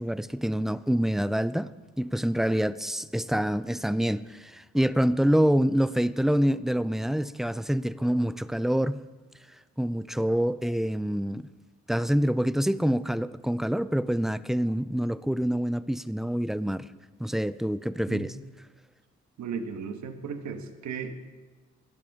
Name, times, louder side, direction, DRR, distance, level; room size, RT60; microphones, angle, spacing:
voice 1, 0.0-1.7 2.0-9.0 9.8-11.5 11.9-16.9 17.2-18.3, equal, ahead, 16 dB, 0.4 m, -26 dB
voice 2, 19.4-21.2, right 6 dB, 70° right, 7 dB, 1.4 m, -35 dB
18.5 x 12.0 x 3.6 m, 1.3 s
cardioid pair, 90°, 30 cm